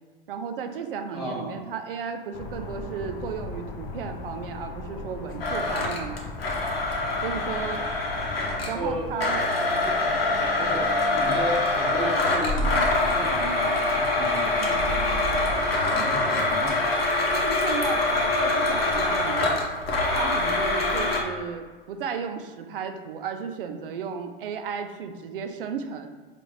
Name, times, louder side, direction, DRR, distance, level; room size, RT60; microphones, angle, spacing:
voice 1, 0.3-6.2 7.2-7.9 8.7-9.4 17.3-19.6 20.1-26.1, right 6 dB, 65° right, 7 dB, 0.5 m, -34 dB
voice 2, 1.1-1.5 8.7-9.1 9.7-10.3 10.5-16.9, right 1 dB, ahead, -6 dB, 1.2 m, -35 dB
sound 1, 2.3-9.1, left 4 dB, 30° left, 0.4 m, -38 dB
Domestic sounds home sounds, 5.4-8.8 9.2-21.2, left 2 dB, 80° left, 0.8 m, -24 dB
4.8 x 2.5 x 3.0 m, 1.4 s
figure-of-eight pair, 90°, 30 cm